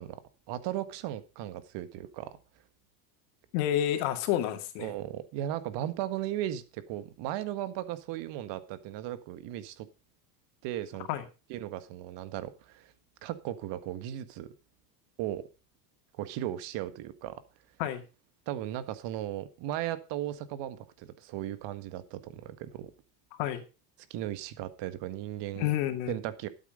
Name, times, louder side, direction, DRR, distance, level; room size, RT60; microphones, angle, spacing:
voice 1, 0.0-2.4 4.8-9.9 10.6-11.1 11.5-12.9 13.2-14.5 15.2-15.4 16.2-17.4 18.5-22.9 24.1-25.7 26.1-26.5, right 12 dB, 60° right, 12 dB, 1.6 m, -36 dB
voice 2, 3.5-4.9 11.1-11.2 17.8-18.0 23.4-23.6 25.6-26.2, left 11 dB, 75° left, 6 dB, 2.4 m, -29 dB
12.5 x 8.3 x 5.1 m, 0.32 s
supercardioid pair, 115°, 48 cm